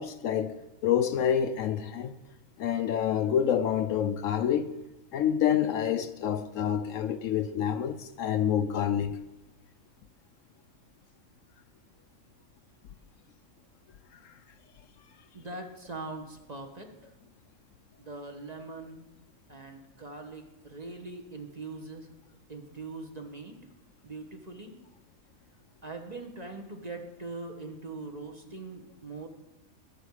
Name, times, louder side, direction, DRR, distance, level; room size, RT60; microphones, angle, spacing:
voice 1, 0.0-2.1 2.6-4.7 5.1-9.2, left 9 dB, 70° left, 0.9 m, -27 dB
voice 2, 15.3-17.1 18.0-19.0 19.5-22.1 22.5-23.6 24.0-24.7 25.8-29.3, right 3 dB, 30° right, 1.4 m, -42 dB
20.0 x 6.9 x 4.8 m
omnidirectional pair, 1.5 m